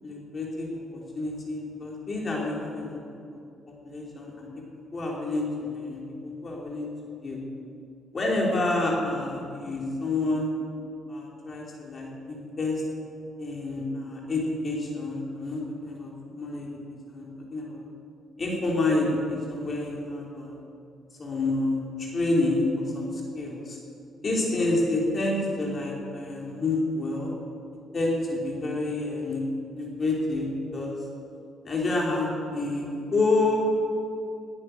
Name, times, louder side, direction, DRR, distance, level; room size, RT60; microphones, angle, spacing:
voice 1, 0.0-3.0 3.8-4.5 4.7-6.9 7.2-7.4 8.1-10.5 11.1-12.8 13.4-16.7 17.1-17.8 18.4-20.5 21.2-23.8 24.2-27.3 27.9-29.4 29.8-30.5 30.7-30.9 31.6-33.5, left 2 dB, 30° left, -2 dB, 3.2 m, -28 dB
20.0 x 9.8 x 6.5 m, 2.6 s
cardioid pair, 150°, 0 cm